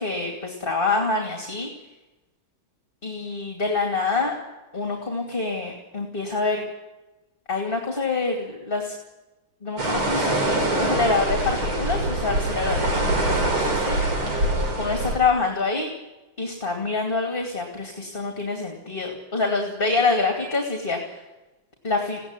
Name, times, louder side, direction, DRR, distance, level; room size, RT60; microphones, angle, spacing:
voice 1, 0.0-1.7 3.0-4.4 4.7-6.6 7.5-8.9 9.6-14.0 14.3-14.5 14.8-15.9 16.4-21.2 21.8-22.2, left 3 dB, 25° left, 2 dB, 2.7 m, -26 dB
sound 1, 9.8-15.2, right 2 dB, 85° right, 4.8 m, -24 dB
20.0 x 16.5 x 9.8 m, 1.1 s
omnidirectional pair, 2.3 m